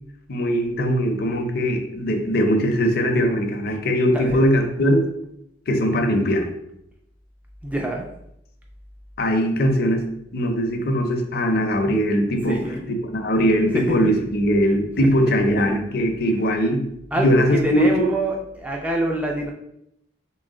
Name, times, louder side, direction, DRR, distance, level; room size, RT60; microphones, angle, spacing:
voice 1, 0.3-5.0 5.7-6.5 9.2-10.0 10.3-12.6 12.9-16.8 17.2-17.9, equal, 50° left, 4 dB, 0.6 m, -20 dB
voice 2, 7.6-8.1 12.4-12.9 13.7-14.0 15.0-15.1 15.4-15.7 17.1-19.5, right 1 dB, 5° right, 0 dB, 0.3 m, -25 dB
3.1 x 3.0 x 3.7 m, 0.77 s
head